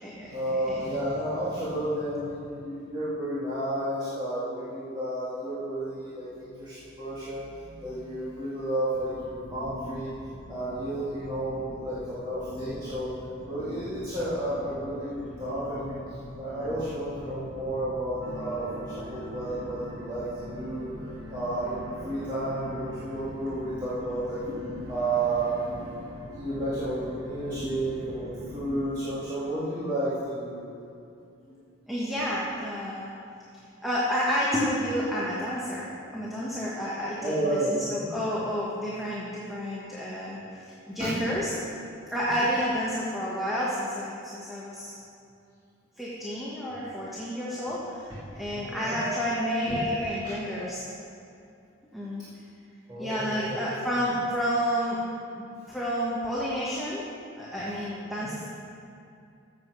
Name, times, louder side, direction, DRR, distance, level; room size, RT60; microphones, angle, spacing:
voice 1, 0.2-10.1 10.5-13.1 13.5-21.0 21.3-24.4 24.9-25.6 26.3-30.7 37.2-38.1 41.0-41.2 42.3-42.4 46.7-46.9 48.3-50.6 52.9-53.6 54.0-54.1 57.5-57.7, right 1 dB, 20° right, -12 dB, 2.1 m, -32 dB
sound 1, 8.9-28.9, equal, 65° left, 2.5 m, -44 dB
sound 2, 18.2-30.2, right 1 dB, 75° right, 1.1 m, -45 dB
voice 2, 31.9-33.1 33.8-41.5 42.1-44.9 46.0-50.8 51.9-52.2 53.0-55.0 55.3-57.0 57.4-58.4, equal, ahead, -7 dB, 1.4 m, -30 dB
14.0 x 7.5 x 4.9 m, 2.6 s
head